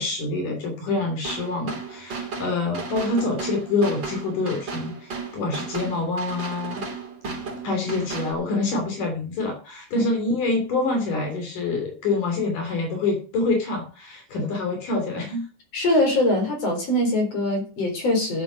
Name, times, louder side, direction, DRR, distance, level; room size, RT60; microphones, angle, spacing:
voice 1, 0.0-6.9 7.6-15.5, left 3 dB, 70° left, 3 dB, 4.5 m, -26 dB
sound 1, 1.2-8.3, right 4 dB, 35° right, 3.4 m, -34 dB
voice 2, 15.7-18.4, left 1 dB, 45° left, 3 dB, 5.3 m, -22 dB
13.0 x 7.8 x 6.3 m, 0.37 s
omnidirectional pair, 3.8 m